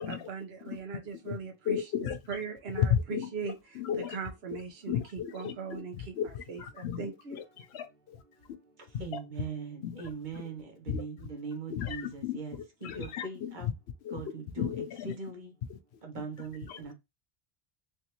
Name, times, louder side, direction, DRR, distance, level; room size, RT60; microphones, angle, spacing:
voice 1, 0.1-1.8 2.3-3.8 4.1-6.1 6.5-7.4, right 5 dB, 75° right, 1.1 m, -39 dB
voice 2, 1.6-2.2 2.7-4.2 4.5-4.6 4.9-7.0 7.3-8.2 8.9-9.0 9.8-10.0 10.4-10.5 10.9-11.0 11.7-12.4 12.8-13.3 13.6-13.7 14.0-14.2 14.6-15.1 15.7-15.8 16.7-16.8, left 9 dB, 85° left, 0.9 m, -34 dB
voice 3, 9.0-12.5 12.8-13.7 14.1-14.7 15.0-15.5 16.0-16.9, right 5 dB, 50° right, 1.0 m, -40 dB
3.4 x 2.6 x 2.8 m
omnidirectional pair, 1.1 m